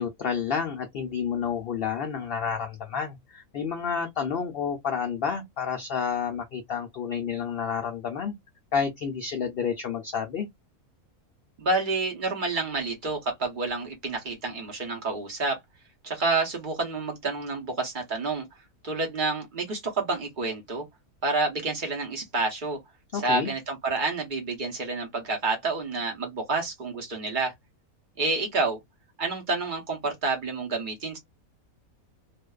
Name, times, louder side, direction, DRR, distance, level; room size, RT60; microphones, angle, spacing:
voice 1, 0.0-8.3 8.7-10.5 23.1-23.5, left 7 dB, 80° left, 0.5 m, -30 dB
voice 2, 11.6-15.6 16.0-18.5 18.8-20.8 21.2-22.8 23.1-27.5 28.2-28.8 29.2-31.2, right 3 dB, 45° right, 0.7 m, -29 dB
2.5 x 2.2 x 2.2 m
omnidirectional pair, 1.6 m